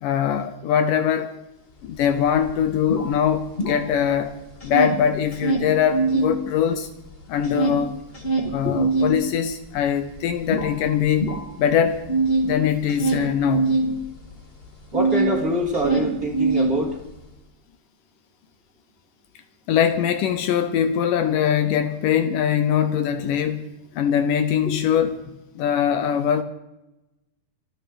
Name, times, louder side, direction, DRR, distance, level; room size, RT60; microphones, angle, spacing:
voice 1, 0.0-1.4 1.8-4.4 4.6-6.9 7.3-8.0 8.5-11.3 11.6-12.1 12.4-13.8 19.7-23.7 24.0-25.2 25.6-26.4, left 8 dB, 75° left, 2.3 m, -22 dB
sound 1, 1.8-1.9 2.2-4.2 4.5-6.3 6.7-15.4 15.6-17.2, right 3 dB, 20° left, 1.6 m, -24 dB
voice 2, 14.9-16.9, right 1 dB, 25° right, 2.7 m, -24 dB
25.5 x 9.2 x 5.3 m
omnidirectional pair, 4.2 m